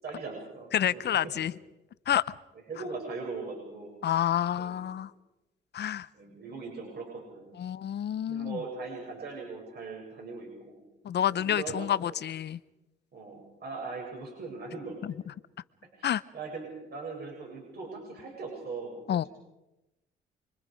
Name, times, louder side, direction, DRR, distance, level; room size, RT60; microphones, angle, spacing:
voice 1, 0.0-1.3 2.7-3.9 4.6-5.0 6.1-7.5 8.3-10.8 11.3-12.1 13.1-15.0 16.0-19.3, right 4 dB, 55° right, 7.7 m, -40 dB
voice 2, 0.7-1.5 2.1-2.3 4.0-5.1 5.7-6.1 7.6-8.6 11.0-12.6 16.0-16.2 19.1-19.2, left 10 dB, 60° left, 0.8 m, -28 dB
29.0 x 23.0 x 5.2 m
cardioid pair, 90°, 20 cm